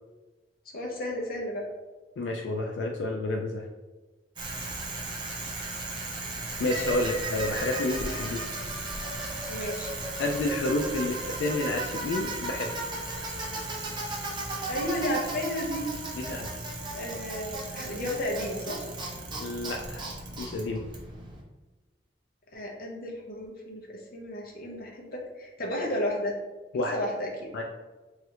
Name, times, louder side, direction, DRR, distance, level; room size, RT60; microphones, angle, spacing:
voice 1, 0.7-1.7 9.5-10.0 14.7-15.9 16.9-18.9 22.5-26.4 26.9-27.5, equal, 55° left, -1 dB, 0.6 m, -33 dB
voice 2, 2.2-3.7 6.6-8.5 10.2-12.7 16.2-16.5 19.4-20.1 20.4-20.8 26.7-26.9 27.5-27.6, left 2 dB, 85° left, 2 dB, 0.3 m, -30 dB
Bicycle, 4.4-21.4, right 2 dB, 25° right, 0.5 m, -35 dB
3.1 x 2.4 x 2.8 m, 1.2 s
head